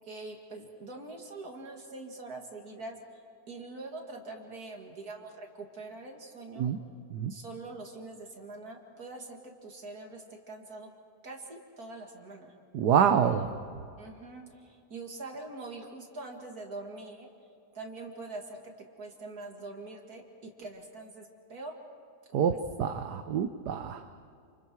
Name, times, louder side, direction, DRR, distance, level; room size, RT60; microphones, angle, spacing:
voice 1, 0.0-3.2 3.5-6.7 7.3-10.9 11.2-12.5 13.2-13.5 14.0-17.3 17.7-18.6 19.0-21.7 22.3-22.6, right 2 dB, 65° right, 1 dB, 3.1 m, -44 dB
voice 2, 12.7-13.5 22.3-24.0, right 8 dB, 90° right, 7 dB, 1.5 m, -26 dB
29.5 x 28.5 x 4.7 m, 2.5 s
omnidirectional pair, 1.7 m